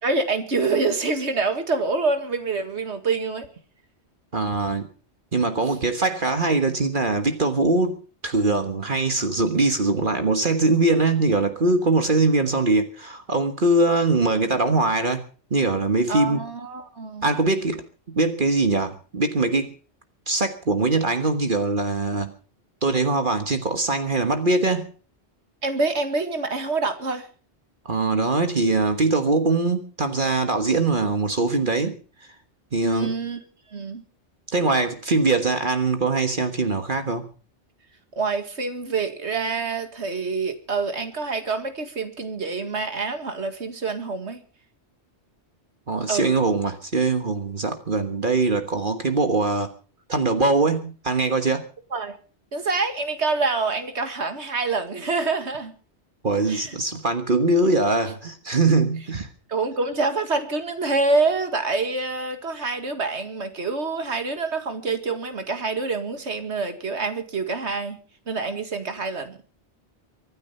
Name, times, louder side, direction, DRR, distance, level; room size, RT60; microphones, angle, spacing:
voice 1, 0.0-3.5 16.1-17.3 25.6-27.3 32.8-33.4 33.7-34.0 38.2-44.4 46.1-46.3 51.9-52.2 52.5-55.7 56.5-56.7 59.5-68.0 68.3-69.4, right 3 dB, 75° right, 8 dB, 2.3 m, -26 dB
voice 2, 4.3-4.9 5.3-15.2 15.5-16.4 17.2-17.8 18.1-19.7 20.3-22.3 22.8-24.9 27.8-31.9 32.7-33.1 34.5-37.3 45.9-49.7 50.1-51.6 56.2-59.3, right 3 dB, 50° right, 7 dB, 1.5 m, -22 dB
24.5 x 9.7 x 5.5 m, 0.39 s
omnidirectional pair, 1.2 m